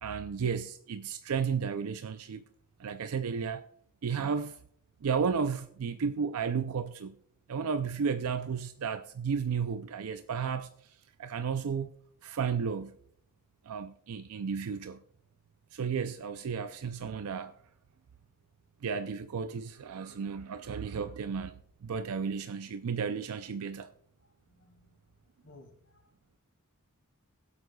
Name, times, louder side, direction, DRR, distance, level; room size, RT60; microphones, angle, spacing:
voice 1, 0.0-2.4 2.8-3.7 4.0-4.6 5.0-7.2 7.5-10.7 11.2-11.9 12.2-12.9 13.7-15.0 15.7-17.5 18.8-23.9, right 6 dB, 70° right, 0.4 m, -33 dB
voice 2, 24.2-25.0 25.4-26.1, left 2 dB, 60° left, 3.5 m, -58 dB
23.0 x 8.2 x 2.3 m
head